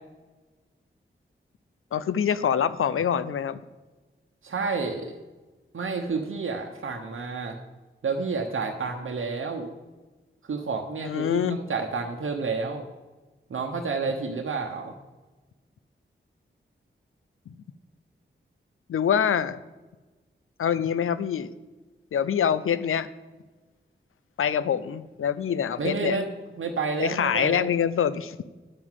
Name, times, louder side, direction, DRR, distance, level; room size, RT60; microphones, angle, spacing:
voice 1, 1.9-3.6 11.0-11.6 17.5-17.6 18.9-19.6 20.6-21.5 22.1-23.1 24.4-26.2 27.0-28.4, left 8 dB, 80° left, 15 dB, 0.5 m, -25 dB
voice 2, 4.4-5.2 5.7-7.6 8.0-9.7 10.4-12.9 13.5-15.0 25.8-26.3 26.6-27.7, right 4 dB, 70° right, 1 dB, 1.0 m, -30 dB
10.0 x 6.0 x 7.5 m, 1.2 s
cardioid pair, 45°, 21 cm